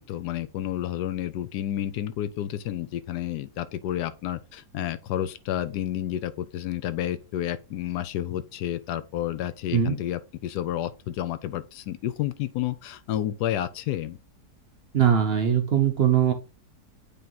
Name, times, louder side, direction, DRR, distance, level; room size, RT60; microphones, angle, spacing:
voice 1, 0.0-14.2, left 12 dB, 80° left, 1.1 m, -30 dB
voice 2, 14.9-16.3, right 9 dB, 60° right, 0.6 m, -21 dB
8.4 x 3.0 x 3.8 m
omnidirectional pair, 1.8 m